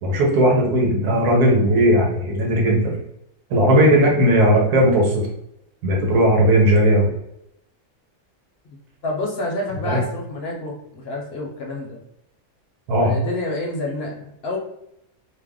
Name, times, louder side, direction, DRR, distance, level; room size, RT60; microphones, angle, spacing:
voice 1, 0.0-2.9 3.5-5.2 5.8-7.1 9.8-10.0 12.9-13.1, right 1 dB, 80° right, -2 dB, 1.4 m, -17 dB
voice 2, 9.0-12.0 13.0-14.6, left 2 dB, 50° left, -1 dB, 0.9 m, -28 dB
3.4 x 2.1 x 3.6 m, 0.80 s
omnidirectional pair, 1.6 m